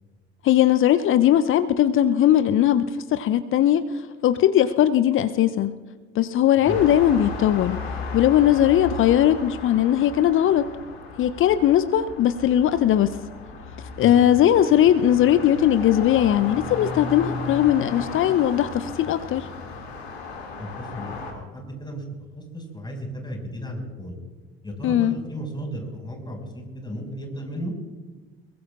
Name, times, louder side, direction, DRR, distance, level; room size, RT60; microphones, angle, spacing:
voice 1, 0.4-3.8 4.2-5.7 6.1-7.8 8.1-10.7 11.2-13.1 14.0-19.5 24.8-25.1, left 11 dB, 40° left, 12 dB, 0.7 m, -19 dB
sound 1, 6.6-21.3, left 3 dB, 75° left, 2.3 m, -35 dB
voice 2, 20.6-22.0 22.3-24.2 24.6-27.7, equal, 15° left, 1 dB, 5.6 m, -34 dB
22.5 x 22.0 x 2.5 m, 1.3 s
figure-of-eight pair, 55°, 32 cm